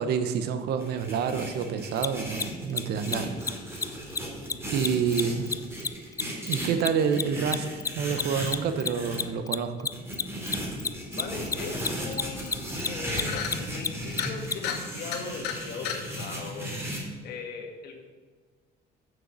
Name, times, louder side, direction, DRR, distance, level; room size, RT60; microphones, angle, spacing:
voice 1, 0.0-3.4 4.7-5.5 6.4-7.7 7.9-9.9, right 7 dB, 75° right, 10 dB, 0.9 m, -28 dB
sound 1, 0.8-9.2 9.9-17.0, equal, 15° right, 2.8 m, -36 dB
Mechanisms, 2.0-2.1 2.3-2.4 2.7-2.8 3.1-3.2 3.4-3.5 3.8-4.2 4.5-7.2 7.5-14.5, left 5 dB, 20° left, 0.3 m, -29 dB
voice 2, 11.1-16.7 17.2-18.0, left 5 dB, 70° left, 3 dB, 1.8 m, -39 dB
sound 2, 11.9-12.0 12.3-12.5 12.8-13.0 13.3-13.6 14.1-14.3 14.6-14.8 15.1-15.6 15.8-16.0, left 9 dB, 85° left, 1.1 m, -32 dB
7.3 x 6.8 x 6.7 m, 1.5 s
cardioid pair, 110°, 17 cm